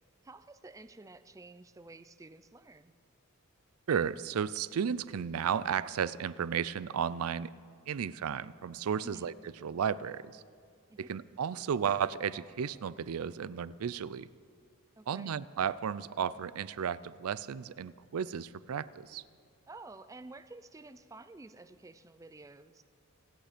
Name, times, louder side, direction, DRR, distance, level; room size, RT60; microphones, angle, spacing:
voice 1, 0.2-2.9 9.0-9.3 10.9-11.1 15.0-15.4 19.7-22.8, right 2 dB, 15° right, 12 dB, 0.4 m, -51 dB
voice 2, 3.9-7.5 7.9-9.3 9.6-10.4 11.0-14.3 15.1-19.2, right 7 dB, 80° right, 19 dB, 0.4 m, -33 dB
26.0 x 9.0 x 5.1 m, 2.3 s
head